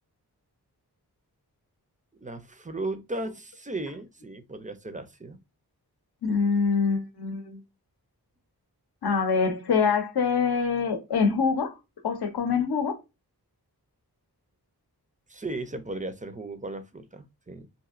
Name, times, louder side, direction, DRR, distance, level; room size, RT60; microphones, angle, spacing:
voice 1, 2.2-5.4 15.3-17.7, right 2 dB, 20° right, 0.4 m, -36 dB
voice 2, 6.2-7.6 9.0-11.8 12.0-13.0, left 5 dB, 75° left, 0.7 m, -25 dB
2.9 x 2.6 x 2.3 m
wide cardioid pair, 80°, 39 cm